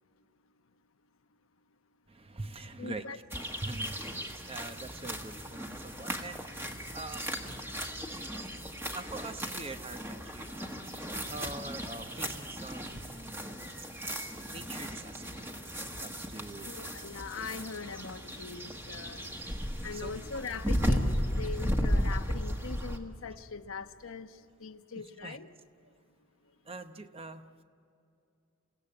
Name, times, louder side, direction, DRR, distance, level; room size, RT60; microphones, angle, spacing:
voice 1, 2.1-8.2 8.9-10.6 11.1-13.5 13.8-13.9 14.5-15.4 15.8-16.7 19.9-20.4 25.2-25.4 26.6-27.5, right 2 dB, 25° right, 9 dB, 0.8 m, -44 dB
voice 2, 2.8-3.2 16.6-19.3 19.8-24.3 24.6-25.5, left 5 dB, 80° left, 8 dB, 1.0 m, -41 dB
sound 1, 3.3-23.0, equal, 10° right, 1.5 m, -35 dB
28.5 x 16.5 x 8.7 m, 2.6 s
head